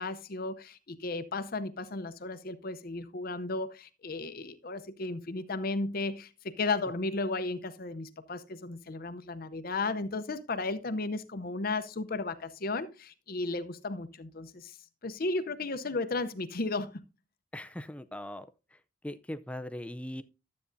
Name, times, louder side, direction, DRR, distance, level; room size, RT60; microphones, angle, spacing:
voice 1, 0.0-14.8 15.0-17.0, left 3 dB, 45° left, 0.7 m, -34 dB
voice 2, 17.5-20.2, left 1 dB, 5° left, 0.4 m, -40 dB
12.5 x 8.5 x 2.6 m
head